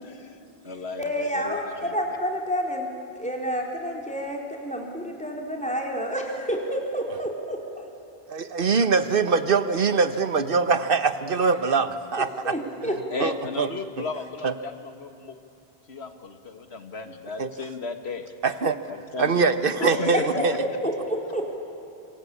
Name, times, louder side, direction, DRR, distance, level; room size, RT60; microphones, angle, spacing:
voice 1, 0.0-0.4 0.6-2.0 13.1-15.4 15.9-18.3 18.9-19.3 19.8-20.1, left 3 dB, 80° left, 7 dB, 2.0 m, -35 dB
voice 2, 1.0-2.9 3.2-7.6 12.4-13.3 19.8-21.4, equal, 5° left, 0 dB, 4.3 m, -29 dB
voice 3, 8.3-12.5 13.2-13.7 14.0-14.1 14.4-14.5 17.4-17.5 18.4-18.8 19.2-20.5, right 4 dB, 60° right, 11 dB, 1.3 m, -23 dB
27.0 x 25.5 x 8.7 m, 2.9 s
omnidirectional pair, 1.1 m